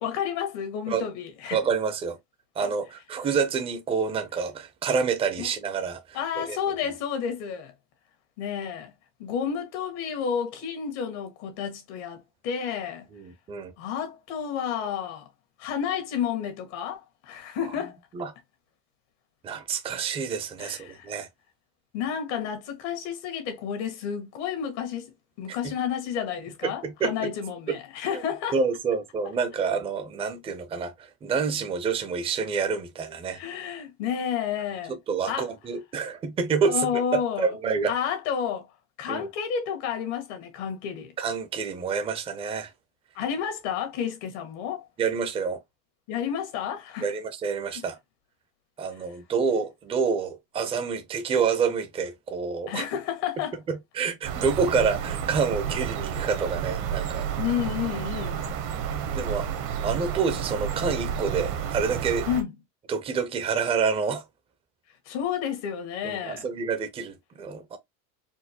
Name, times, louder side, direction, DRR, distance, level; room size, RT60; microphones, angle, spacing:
voice 1, 0.0-1.6 2.6-2.7 5.4-5.5 6.1-7.7 8.4-8.9 9.2-13.1 13.8-15.3 15.6-18.0 20.6-21.1 21.9-28.6 33.3-34.9 35.3-35.5 36.6-37.5 37.9-38.7 39.0-41.1 43.1-44.9 46.1-47.1 47.7-47.8 52.7-53.6 57.4-58.4 62.3-62.5 65.0-66.4, left 8 dB, 80° left, 1.5 m, -31 dB
voice 2, 1.5-2.2 2.6-6.6 13.1-13.7 18.1-18.3 19.4-21.3 25.5-25.7 26.6-27.3 28.5-33.4 34.9-37.9 39.1-39.3 41.2-42.7 45.0-45.6 47.0-48.0 48.8-52.8 53.7-57.3 59.1-62.3 62.9-64.2 66.0-67.8, right 5 dB, 15° right, 0.5 m, -28 dB
sound 1, 54.2-62.4, right 8 dB, 60° right, 0.9 m, -31 dB
4.3 x 2.1 x 2.7 m
cardioid pair, 145°, 34 cm